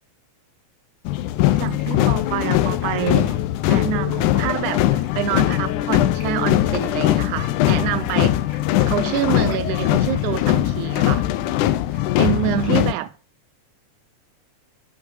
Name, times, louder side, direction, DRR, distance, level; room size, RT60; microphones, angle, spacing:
sound 1, 1.1-12.9, left 14 dB, 85° left, 2.2 m, -20 dB
Fill (with liquid), 1.3-3.4 4.0-4.5 4.9-7.7 8.1-10.5 11.0-11.4, left 2 dB, 25° left, 3.7 m, -43 dB
voice 1, 1.6-3.3 3.6-8.4 8.9-11.3 11.9-13.1, right 13 dB, 85° right, 2.1 m, -26 dB
13.0 x 5.8 x 5.0 m
omnidirectional pair, 3.5 m